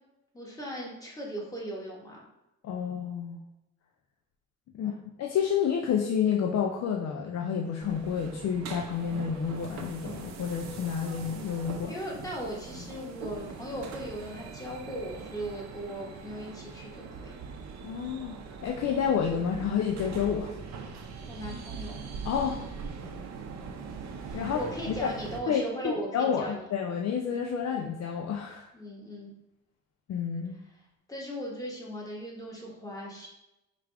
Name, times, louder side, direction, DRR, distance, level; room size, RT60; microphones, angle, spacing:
voice 1, 0.3-2.2 4.7-5.0 11.9-17.4 21.3-22.0 24.3-26.6 28.7-29.3 31.1-33.3, right 1 dB, 10° left, -3 dB, 1.3 m, -38 dB
voice 2, 2.6-3.4 4.7-4.9 5.2-11.9 17.8-20.6 22.2-22.6 24.3-24.6 24.9-25.1 25.5-28.7 30.1-30.6, left 7 dB, 60° left, 1 dB, 0.5 m, -29 dB
sound 1, 7.8-25.4, right 5 dB, 65° right, 0.7 m, -41 dB
5.0 x 2.5 x 3.4 m, 0.93 s
cardioid pair, 90°, 30 cm